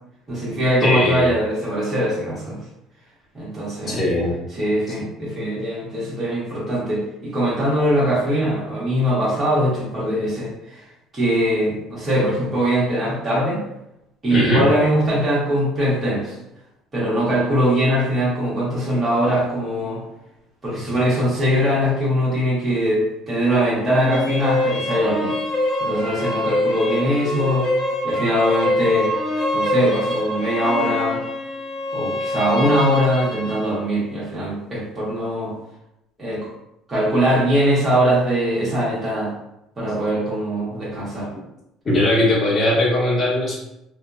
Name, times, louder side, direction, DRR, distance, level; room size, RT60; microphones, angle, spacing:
voice 1, 0.3-2.6 3.3-4.0 4.5-10.8 11.1-13.6 14.2-16.4 16.9-20.0 20.6-25.3 25.8-27.7 28.0-29.1 29.5-31.2 31.9-35.6 36.2-36.5 36.9-39.3 39.8-41.3, equal, 25° right, -8 dB, 1.1 m, -21 dB
voice 2, 0.8-1.3 3.9-4.4 14.3-14.6 41.8-43.5, left 1 dB, 25° left, -8 dB, 1.1 m, -19 dB
sound 1, 23.8-33.8, left 1 dB, 40° left, 0.8 m, -24 dB
2.7 x 2.2 x 2.3 m, 0.87 s
cardioid pair, 135°, 0 cm